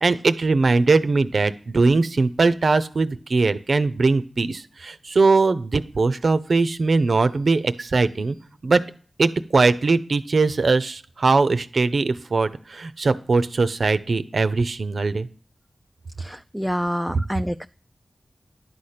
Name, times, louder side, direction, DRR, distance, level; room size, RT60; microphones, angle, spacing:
voice 1, 0.0-8.4 8.6-8.8 9.2-15.3, right 3 dB, 70° right, 13 dB, 0.6 m, -20 dB
voice 2, 16.2-17.7, equal, ahead, 8 dB, 0.3 m, -27 dB
11.0 x 4.3 x 6.6 m, 0.42 s
cardioid pair, 40°, 0 cm